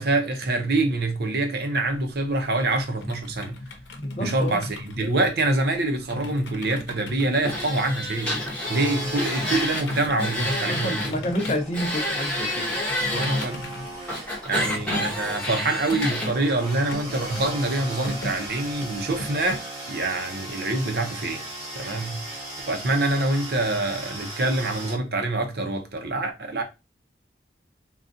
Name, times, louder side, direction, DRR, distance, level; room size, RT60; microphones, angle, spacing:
voice 1, 0.0-3.6 4.2-8.4 8.7-11.2 13.1-13.7 14.4-21.4 21.7-22.2 22.7-26.6, right 2 dB, 60° right, 0.6 m, -25 dB
sound 1, 1.8-19.6, left 1 dB, 90° left, 0.8 m, -38 dB
voice 2, 4.0-4.6 10.7-13.2, equal, 35° left, 0.6 m, -29 dB
sound 2, 7.4-11.1 11.4-13.4 14.1-16.3, left 1 dB, 5° left, 0.9 m, -29 dB
sound 3, 8.6-24.9, right 1 dB, 20° right, 1.2 m, -38 dB
3.7 x 2.3 x 2.5 m
head